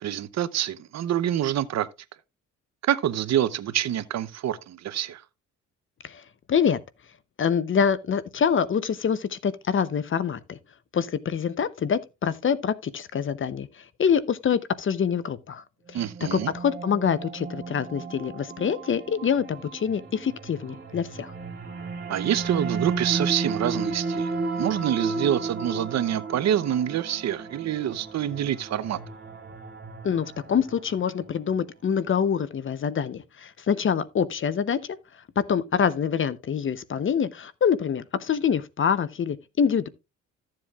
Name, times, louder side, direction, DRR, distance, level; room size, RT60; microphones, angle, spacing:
voice 1, 0.0-1.9 2.9-5.2 15.9-16.5 22.1-29.0, right 10 dB, 60° right, 0.8 m, -26 dB
voice 2, 7.4-10.6 10.9-16.0 16.3-21.3 30.0-35.0 35.4-39.9, left 7 dB, 40° left, 0.8 m, -25 dB
sound 1, 15.9-31.2, right 4 dB, 35° right, 2.7 m, -34 dB
14.0 x 7.6 x 2.4 m
cardioid pair, 90°, 30 cm